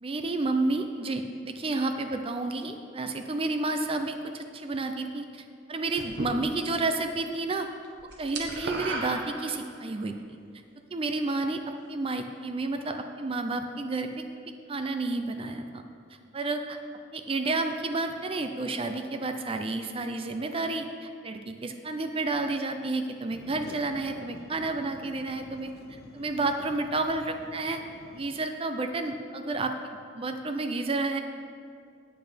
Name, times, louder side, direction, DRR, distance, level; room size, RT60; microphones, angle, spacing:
voice 1, 0.0-7.7 8.2-10.2 10.9-11.6 11.9-14.2 14.7-15.7 16.3-16.8 17.1-27.8 28.1-31.2, right 3 dB, 30° right, 6 dB, 0.5 m, -31 dB
sound 1, 5.9-6.9 7.2-7.6 7.8-9.9, right 2 dB, 65° right, 1.2 m, -35 dB
sound 2, 23.3-28.3, left 2 dB, 55° left, 0.6 m, -48 dB
8.7 x 8.7 x 5.1 m, 2.3 s
head